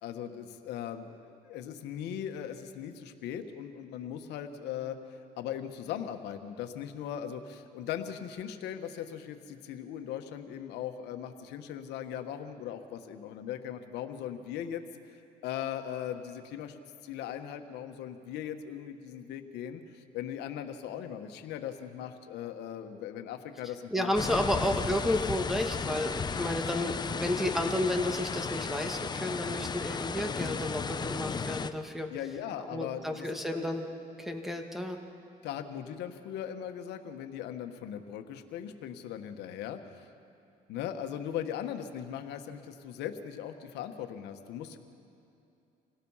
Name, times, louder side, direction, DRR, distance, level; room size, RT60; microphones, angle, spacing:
voice 1, 0.0-14.8 15.1-24.1 32.1-33.7 35.4-40.1 40.7-44.8, left 9 dB, 85° left, 7 dB, 1.4 m, -39 dB
voice 2, 23.9-32.1 32.7-33.9 34.2-35.0, left 1 dB, ahead, 4 dB, 1.9 m, -31 dB
sound 1, 24.1-31.7, left 5 dB, 25° left, 0.7 m, -34 dB
26.5 x 17.5 x 5.7 m, 2.8 s
cardioid pair, 110°, 17 cm